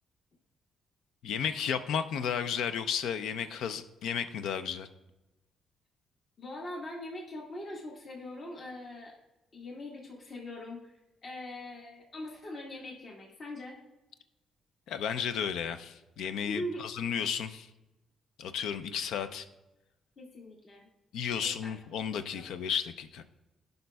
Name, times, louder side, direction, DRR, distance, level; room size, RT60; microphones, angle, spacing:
voice 1, 1.2-4.9 14.9-17.7 18.4-19.5 21.1-23.2, left 7 dB, 80° left, 11 dB, 0.4 m, -33 dB
voice 2, 6.4-9.1 9.5-13.8 16.4-16.8 20.2-20.9 21.4-21.7 22.3-22.4, left 1 dB, 45° left, -2 dB, 1.6 m, -42 dB
11.5 x 5.3 x 2.3 m, 1.0 s
cardioid pair, 90°, 0 cm